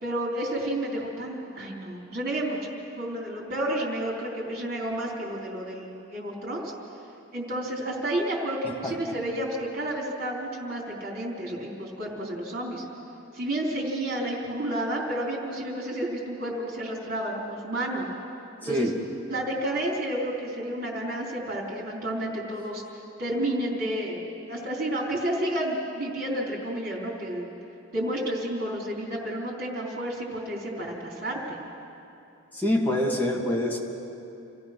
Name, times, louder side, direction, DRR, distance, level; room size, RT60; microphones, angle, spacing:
voice 1, 0.0-2.7 3.0-6.7 7.3-12.8 13.3-18.1 18.6-18.9 19.3-22.8 23.2-27.6 27.9-31.6, right 1 dB, 45° right, -2 dB, 4.0 m, -31 dB
voice 2, 18.6-18.9 32.5-33.8, left 1 dB, 10° left, -2 dB, 2.1 m, -26 dB
28.0 x 15.5 x 6.2 m, 2.7 s
head